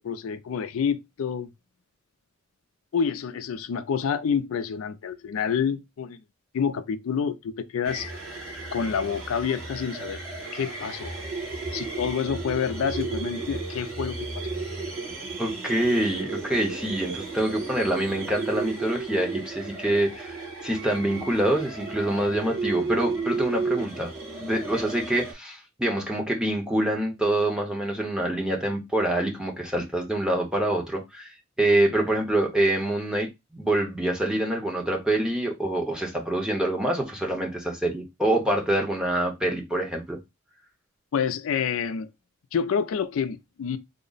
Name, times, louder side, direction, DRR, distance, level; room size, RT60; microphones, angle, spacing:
voice 1, 0.0-1.5 2.9-6.2 6.5-8.1 8.7-10.2 10.5-11.1 11.7-14.4 41.1-42.1 42.5-43.8, left 7 dB, 80° left, 0.4 m, -28 dB
sound 1, 7.8-25.3, right 3 dB, 75° right, 2.0 m, -33 dB
voice 2, 15.4-20.4 20.6-24.1 24.4-40.2, right 1 dB, 5° right, 0.8 m, -26 dB
3.7 x 2.1 x 3.8 m
head